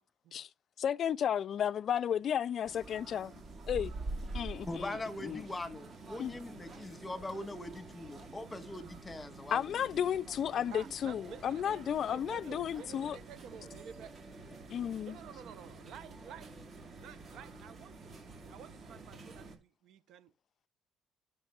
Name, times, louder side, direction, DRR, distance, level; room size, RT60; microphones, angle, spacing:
voice 1, 0.8-3.3 3.7-3.9 4.4-4.9 5.2-5.4 6.2-6.3 9.5-13.2 14.7-15.2, left 9 dB, 50° left, 0.4 m, -33 dB
sound 1, 2.6-19.6, right 2 dB, 40° right, 2.2 m, -47 dB
voice 2, 4.7-9.8, left 2 dB, 15° left, 1.4 m, -42 dB
voice 3, 10.7-14.1 15.0-16.5 17.0-18.1 18.4-20.3, right 9 dB, 65° right, 0.8 m, -51 dB
13.0 x 6.0 x 2.4 m
cardioid pair, 110°, 0 cm